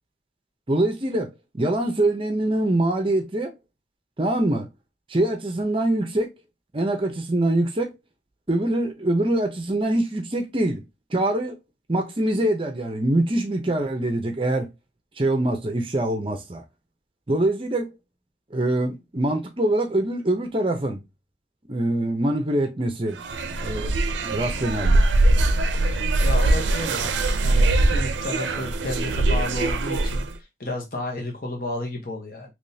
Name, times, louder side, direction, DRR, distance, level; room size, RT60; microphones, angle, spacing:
voice 1, 0.7-3.5 4.2-4.7 5.1-6.3 6.7-7.9 8.5-10.8 11.1-11.6 11.9-14.7 15.2-16.6 17.3-17.9 18.5-21.0 21.7-23.2 23.6-23.9 24.2-25.0, right 1 dB, 30° right, 0.6 m, -24 dB
sound 1, 23.2-30.3, right 2 dB, 85° right, 0.5 m, -22 dB
voice 2, 26.2-30.2 30.6-32.5, left 1 dB, 50° left, 1.0 m, -32 dB
3.6 x 3.0 x 2.7 m
head